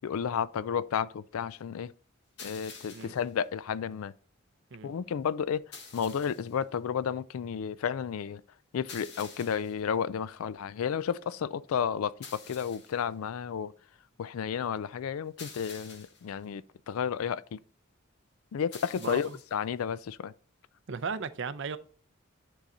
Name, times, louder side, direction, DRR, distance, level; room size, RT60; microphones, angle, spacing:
voice 1, 0.0-1.9 2.4-4.1 4.8-5.6 5.9-8.4 8.7-13.7 14.2-17.6 18.5-20.3, left 7 dB, 85° left, 0.4 m, -32 dB
sound 1, 2.4-3.3 5.7-6.5 8.9-9.8 12.2-13.0 15.4-16.3 18.7-19.5, left 5 dB, 55° left, 1.4 m, -48 dB
voice 2, 19.0-19.4 20.9-21.8, right 5 dB, 60° right, 0.5 m, -36 dB
9.9 x 3.9 x 4.2 m
head